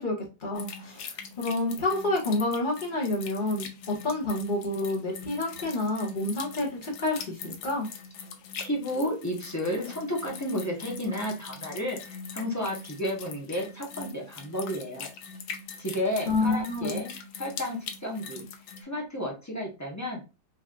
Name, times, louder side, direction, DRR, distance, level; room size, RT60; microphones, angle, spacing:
voice 1, 0.0-7.9 16.2-17.0, left 2 dB, 30° left, -2 dB, 1.4 m, -29 dB
sound 1, 0.5-18.8, left 6 dB, 75° left, 1.4 m, -42 dB
voice 2, 8.6-15.1 15.8-17.1 17.4-18.4 18.8-20.2, equal, 10° left, -2 dB, 0.8 m, -32 dB
4.5 x 3.1 x 2.5 m, 0.31 s
omnidirectional pair, 2.0 m